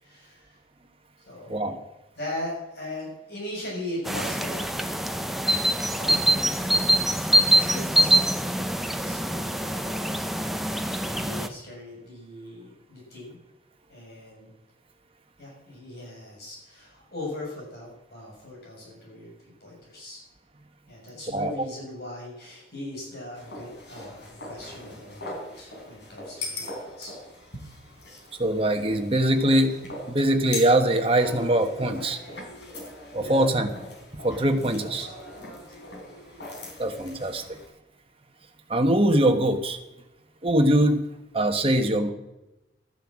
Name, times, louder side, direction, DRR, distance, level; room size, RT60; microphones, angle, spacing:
voice 1, 0.0-0.5 1.3-1.7 2.2-4.9 5.9-6.8 7.5-10.5 11.0-13.4 13.9-14.5 15.4-19.3 19.6-20.2 20.9-27.1 33.2-33.6 34.8-35.5 41.7-41.9, left 1 dB, 60° left, -3 dB, 6.4 m, -39 dB
sound 1, 4.1-11.5, right 1 dB, ahead, 0.6 m, -24 dB
voice 2, 21.3-21.7 28.4-29.8 30.1-32.2 33.1-33.7 34.2-35.1 36.8-37.6 38.7-39.8 40.4-41.0 41.3-42.1, right 1 dB, 30° right, 6 dB, 1.3 m, -22 dB
sound 2, 23.4-37.7, left 2 dB, 75° left, 4.1 m, -41 dB
13.0 x 10.0 x 7.4 m, 0.97 s
head